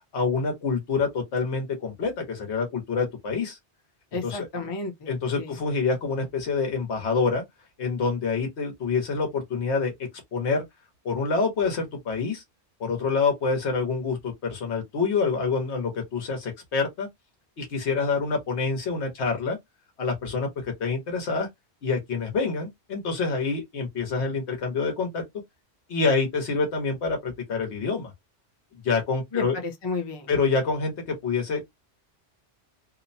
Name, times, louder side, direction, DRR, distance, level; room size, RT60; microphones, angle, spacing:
voice 1, 0.1-3.6 4.2-4.5 5.1-7.4 7.8-9.9 10.3-10.6 11.0-12.4 12.8-17.1 17.6-19.6 20.0-21.5 21.8-25.2 25.9-28.1 28.8-29.5 30.3-31.7, left 4 dB, 85° left, 1.2 m, -26 dB
voice 2, 4.1-5.6 29.3-30.4, left 3 dB, 30° left, 0.5 m, -32 dB
2.8 x 2.1 x 2.6 m
omnidirectional pair, 1.1 m